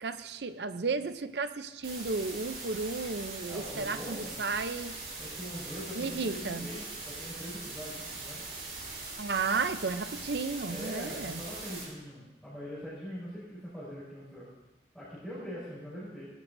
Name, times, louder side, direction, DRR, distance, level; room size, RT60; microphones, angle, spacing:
voice 1, 0.0-5.0 6.0-6.7 9.2-11.4, right 4 dB, 70° right, 11 dB, 0.6 m, -33 dB
sound 1, 1.8-11.8, right 3 dB, 50° right, 6.2 m, -41 dB
voice 2, 3.5-4.4 5.2-8.4 10.7-14.5 14.9-16.3, equal, ahead, -12 dB, 5.5 m, -42 dB
20.5 x 15.5 x 2.7 m, 1.1 s
head